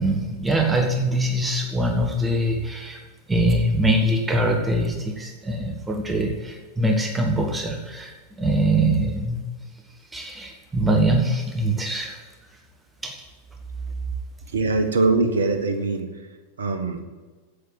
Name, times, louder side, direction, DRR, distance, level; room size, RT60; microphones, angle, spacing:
voice 1, 0.0-3.0 3.3-9.4 10.1-12.2 13.0-13.2, right 1 dB, 10° right, 2 dB, 1.4 m, -23 dB
voice 2, 14.5-16.1 16.6-17.0, right 3 dB, 65° right, 7 dB, 1.3 m, -22 dB
8.4 x 8.2 x 7.6 m, 1.3 s
figure-of-eight pair, 90°, 0 cm